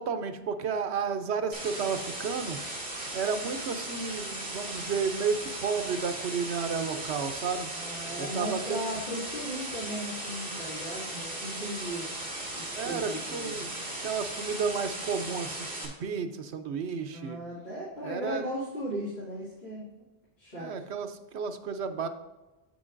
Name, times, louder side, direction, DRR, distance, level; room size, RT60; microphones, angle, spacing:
voice 1, 0.0-2.6 3.1-7.7 8.2-8.9 12.7-15.6 16.0-17.4 18.0-18.4 20.5-21.1 21.3-22.1, right 5 dB, 85° right, 8 dB, 1.0 m, -32 dB
sound 1, 1.5-15.9, right 1 dB, 55° right, 2.1 m, -37 dB
voice 2, 7.7-12.1 12.5-13.6 17.1-19.8 20.4-20.9, equal, 75° left, -9 dB, 2.5 m, -37 dB
9.0 x 7.9 x 2.5 m, 1.1 s
omnidirectional pair, 1.1 m